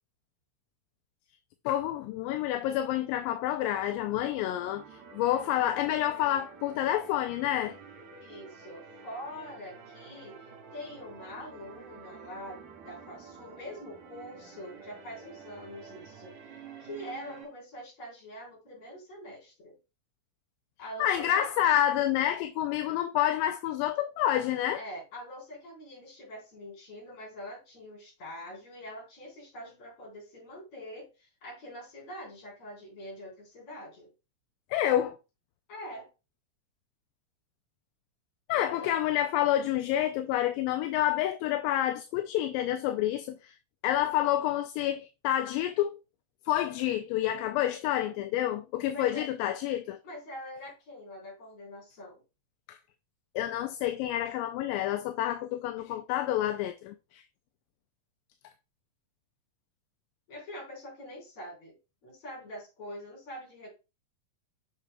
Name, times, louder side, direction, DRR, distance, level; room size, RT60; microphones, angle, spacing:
voice 1, 1.7-7.8 21.0-24.8 34.7-35.2 38.5-43.6 43.8-46.0 46.5-50.0 52.7-52.8 53.4-57.2, left 12 dB, 85° left, 2.2 m, -28 dB
sound 1, 3.7-17.4, right 5 dB, 60° right, 2.6 m, -50 dB
voice 2, 8.2-10.4 10.7-16.3 16.8-19.8 20.8-21.4 24.7-34.1 35.7-36.1 38.5-39.0 48.9-49.2 50.0-52.2 60.3-61.8 62.0-63.7, left 1 dB, 50° left, 5.1 m, -44 dB
8.0 x 5.8 x 2.2 m
omnidirectional pair, 3.9 m